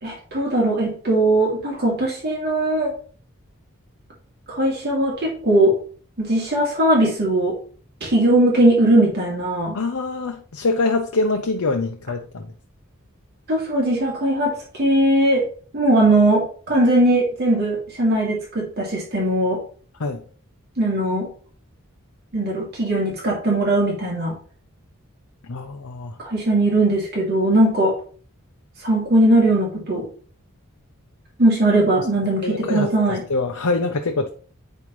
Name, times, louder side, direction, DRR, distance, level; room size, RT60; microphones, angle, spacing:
voice 1, 0.0-3.0 4.5-5.8 6.2-7.6 8.0-9.8 13.5-15.5 15.7-19.6 20.8-21.3 22.3-24.3 26.2-28.0 28.8-30.1 31.4-33.2, right 1 dB, 50° right, -3 dB, 2.5 m, -19 dB
voice 2, 9.7-12.5 20.0-20.2 25.5-26.2 32.0-32.1 32.4-34.3, left 3 dB, 85° left, 4 dB, 0.7 m, -24 dB
8.8 x 5.5 x 3.1 m, 0.42 s
head